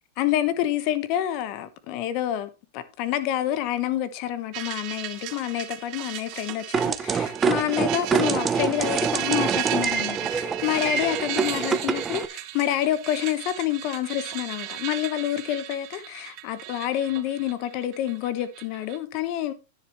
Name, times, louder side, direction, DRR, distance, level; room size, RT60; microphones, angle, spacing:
voice 1, 0.2-19.5, left 12 dB, 35° left, 1.1 m, -28 dB
sound 1, 4.5-19.0, right 16 dB, 30° right, 1.0 m, -35 dB
sound 2, 6.7-12.3, right 6 dB, 10° right, 0.6 m, -26 dB
10.5 x 10.5 x 3.1 m
supercardioid pair, 175°, 0 cm